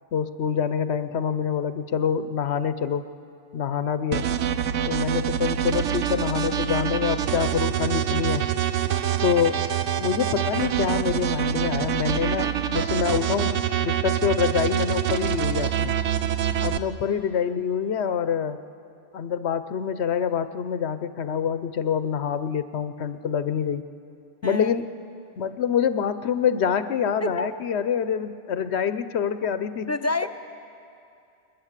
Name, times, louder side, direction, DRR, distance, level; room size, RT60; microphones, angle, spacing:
voice 1, 0.1-3.1 3.5-4.3 4.8-8.4 9.2-9.6 10.0-15.9 16.6-18.6 19.1-23.8 24.4-24.9 25.4-29.9, left 7 dB, 60° left, 12 dB, 0.9 m, -26 dB
sound 1, 4.1-16.8, right 9 dB, 70° right, 1.0 m, -25 dB
voice 2, 24.4-24.7 27.2-27.5 29.9-30.3, left 2 dB, 20° left, 8 dB, 0.4 m, -27 dB
21.5 x 20.5 x 7.4 m, 2.6 s
omnidirectional pair, 1.3 m